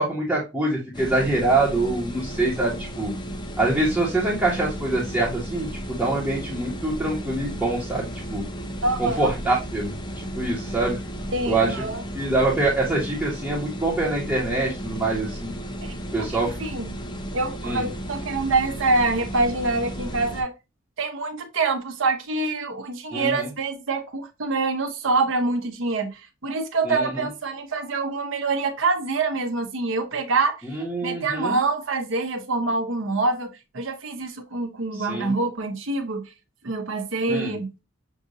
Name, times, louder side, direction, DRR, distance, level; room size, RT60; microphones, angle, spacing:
voice 1, 0.0-3.1 3.6-8.5 9.0-9.9 10.3-11.0 11.4-11.8 12.1-15.5 16.1-16.5 17.6-17.9 23.1-23.5 26.8-27.3 30.7-31.6 35.0-35.3 37.3-37.5, right 2 dB, 5° right, 1.2 m, -25 dB
sound 1, 0.9-20.4, equal, 20° left, 0.6 m, -34 dB
voice 2, 8.8-9.3 11.3-12.0 15.8-16.9 17.3-20.5 21.0-30.7 31.0-36.3 36.6-37.7, right 3 dB, 65° right, 0.9 m, -25 dB
6.4 x 2.6 x 2.6 m
head